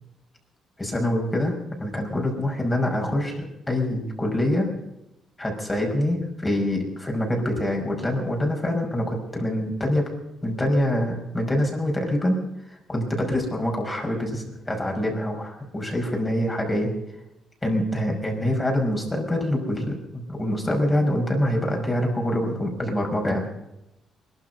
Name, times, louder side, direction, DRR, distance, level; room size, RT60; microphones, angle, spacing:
voice 1, 0.8-4.7 5.4-10.1 10.4-12.4 12.7-16.9 17.6-23.5, left 1 dB, 20° left, 1 dB, 5.4 m, -25 dB
20.5 x 12.5 x 5.5 m, 0.88 s
cardioid pair, 90°, 0 cm